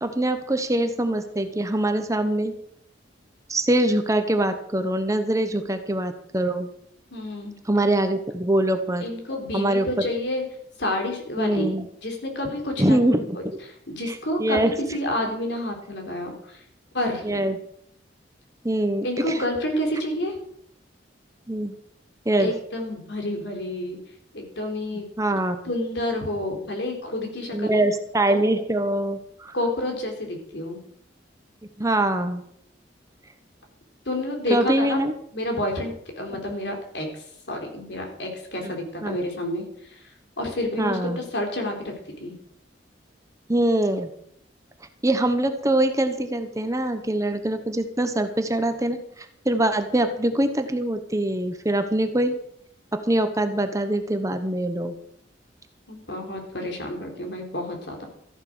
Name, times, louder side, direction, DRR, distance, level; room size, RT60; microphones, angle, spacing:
voice 1, 0.0-2.5 3.5-6.7 7.7-9.0 9.5-10.0 11.4-11.9 12.8-13.6 14.1-14.2 14.4-14.7 17.2-17.6 18.6-19.4 21.5-21.8 22.3-22.5 25.2-25.6 27.5-29.5 31.8-32.4 34.5-35.1 38.6-38.7 39.0-39.2 40.8-41.2 43.5-44.1 45.0-52.4 52.9-55.0, right 1 dB, 15° right, 8 dB, 1.0 m, -23 dB
voice 2, 7.1-7.6 9.0-10.4 10.8-11.8 12.0-13.0 13.3-16.6 16.9-17.5 19.0-20.4 22.4-24.0 24.3-25.1 25.6-27.8 29.5-30.8 34.1-35.0 35.3-39.9 40.4-41.9 42.2-42.3 55.9-58.1, left 1 dB, 70° left, 2 dB, 3.9 m, -29 dB
14.0 x 10.5 x 6.2 m, 0.69 s
head